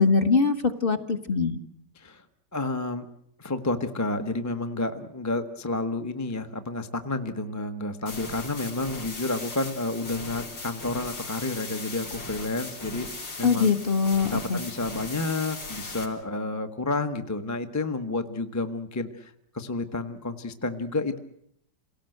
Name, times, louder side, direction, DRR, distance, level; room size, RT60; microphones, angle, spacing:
voice 1, 0.0-1.6 13.4-14.6, left 4 dB, 30° left, 8 dB, 1.4 m, -22 dB
voice 2, 2.5-3.1 3.4-13.7 14.2-21.2, left 2 dB, 10° left, 7 dB, 0.9 m, -30 dB
sound 1, 8.1-16.1, left 3 dB, 65° left, 4.6 m, -38 dB
28.0 x 18.0 x 7.9 m, 0.73 s
omnidirectional pair, 2.1 m